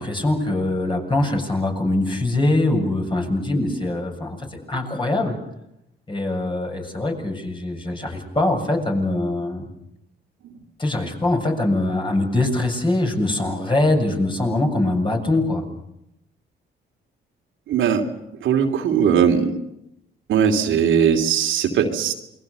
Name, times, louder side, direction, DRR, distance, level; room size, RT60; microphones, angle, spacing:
voice 1, 0.0-5.3 6.1-9.7 10.8-15.6, left 2 dB, 25° left, 2 dB, 7.3 m, -23 dB
voice 2, 17.7-18.0 18.4-19.5 20.3-22.1, right 7 dB, 80° right, 3 dB, 3.1 m, -19 dB
28.5 x 22.5 x 6.9 m, 0.83 s
cardioid pair, 90°, 20 cm